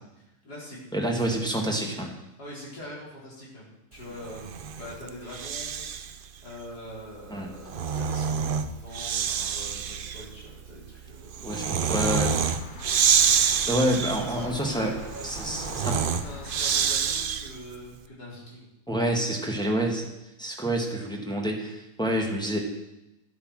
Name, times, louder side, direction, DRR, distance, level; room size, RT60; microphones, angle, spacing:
voice 1, 0.2-0.8 2.4-11.6 13.8-14.9 15.4-18.7, left 1 dB, 75° left, -5 dB, 4.6 m, -43 dB
voice 2, 0.9-2.2 7.3-7.5 11.4-12.3 13.6-14.9 15.2-16.0 18.9-20.0 20.4-22.6, right 1 dB, 5° left, 0 dB, 1.6 m, -28 dB
Breathing, 4.2-6.2 7.4-17.7, right 7 dB, 75° right, 0.5 m, -27 dB
sound 1, 11.8-17.0, left 3 dB, 35° left, 1.0 m, -43 dB
12.0 x 8.3 x 6.4 m, 0.92 s
omnidirectional pair, 1.7 m